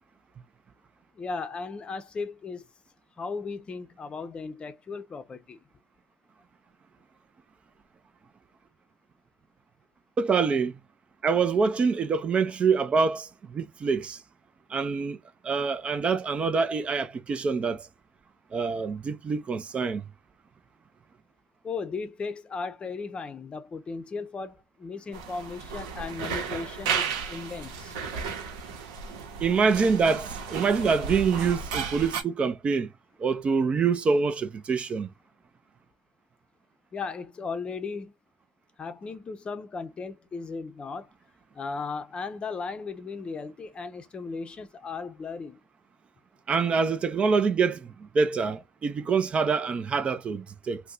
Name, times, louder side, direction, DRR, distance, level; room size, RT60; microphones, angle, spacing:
voice 1, 1.1-2.7 3.2-5.6 21.6-27.9 36.9-38.1 38.8-41.1 41.5-45.6, left 4 dB, 30° left, 0.6 m, -36 dB
voice 2, 10.2-10.7 11.2-14.2 14.7-15.2 15.4-17.8 18.5-20.0 29.4-32.9 33.2-35.1 46.5-50.8, right 5 dB, 35° right, 0.5 m, -25 dB
sound 1, 25.1-32.2, right 6 dB, 80° right, 0.9 m, -34 dB
2.6 x 2.2 x 3.7 m
supercardioid pair, 80°, 3 cm